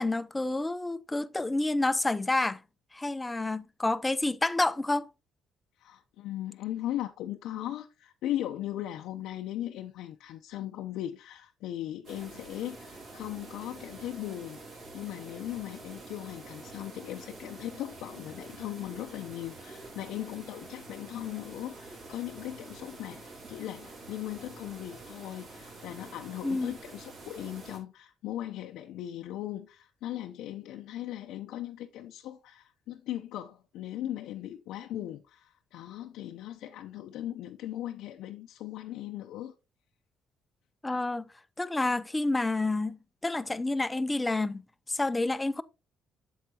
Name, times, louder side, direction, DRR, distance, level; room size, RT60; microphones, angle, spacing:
voice 1, 0.0-2.6 2.9-5.1 26.4-26.7 40.8-41.2 41.6-44.6 44.9-45.6, left 2 dB, 15° left, 0.5 m, -29 dB
voice 2, 5.8-39.5, left 13 dB, 80° left, 0.6 m, -38 dB
sound 1, 12.0-27.8, right 2 dB, 60° right, 3.5 m, -47 dB
8.1 x 7.1 x 2.8 m
cardioid pair, 100°, 0 cm